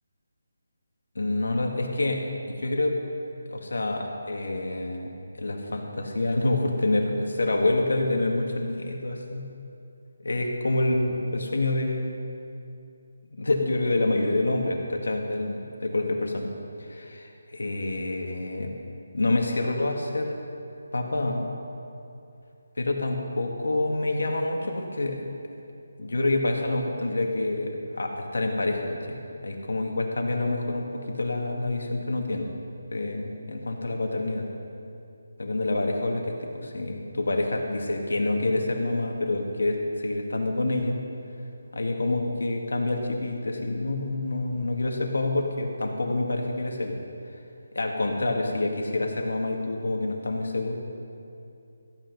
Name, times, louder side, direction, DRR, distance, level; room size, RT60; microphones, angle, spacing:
voice 1, 1.2-2.2 2.5-3.0 3.5-5.1 5.4-9.5 10.2-12.3 13.2-16.5 16.8-18.7 19.1-20.3 20.9-21.5 22.8-25.3 26.0-29.2 29.4-32.5 32.9-34.5 35.4-41.0 41.7-47.0 47.8-50.8, left 2 dB, 85° left, 2 dB, 1.9 m, -27 dB
14.5 x 9.0 x 5.4 m, 2.6 s
hypercardioid pair, 175°, 0 cm